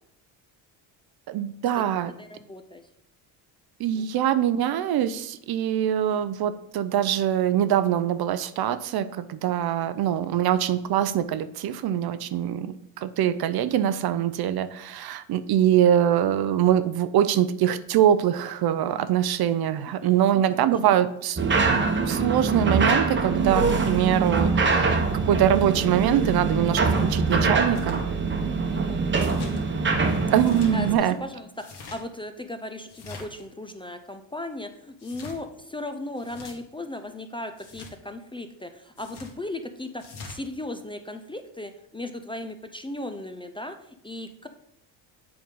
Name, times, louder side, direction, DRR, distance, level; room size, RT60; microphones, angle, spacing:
voice 1, 1.3-2.1 3.8-21.4 22.1-28.0 30.3-31.2, right 10 dB, 55° right, 13 dB, 0.6 m, -23 dB
voice 2, 2.2-2.8 3.9-4.1 19.9-20.4 28.7-29.6 30.7-44.5, left 1 dB, 10° left, 7 dB, 0.4 m, -37 dB
sound 1, 21.4-31.0, right 4 dB, 25° right, 1.0 m, -24 dB
sound 2, 27.7-28.0 29.1-29.6 30.3-30.7 31.5-32.0 32.9-33.4 35.0-35.4 36.2-36.5 37.6-37.9 39.0-39.3 40.0-40.4, left 4 dB, 60° left, 1.8 m, -43 dB
7.7 x 3.6 x 5.3 m, 0.75 s
cardioid pair, 95°, 45 cm